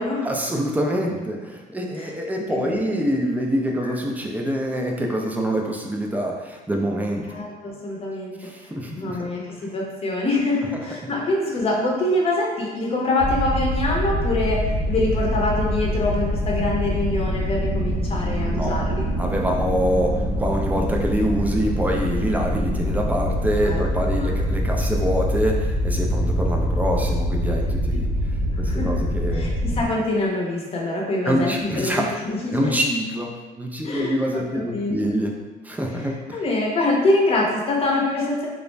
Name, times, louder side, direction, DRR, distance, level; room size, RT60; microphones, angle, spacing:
voice 1, 0.2-7.4 8.4-9.2 18.5-18.8 19.2-28.1 28.6-29.5 31.3-32.1 32.5-35.3 35.6-36.4, equal, 10° right, 0 dB, 0.3 m, -25 dB
voice 2, 2.5-2.8 3.8-4.0 7.3-9.4 9.7-19.1 23.6-23.8 24.1-24.4 27.4-27.5 28.6-29.0 29.3-32.8 33.8-34.9 36.3-38.5, left 2 dB, 35° left, -2 dB, 0.6 m, -25 dB
sound 1, 13.2-29.8, equal, 75° right, 1.0 m, -24 dB
2.4 x 2.0 x 3.1 m, 1.3 s
cardioid pair, 110°, 17 cm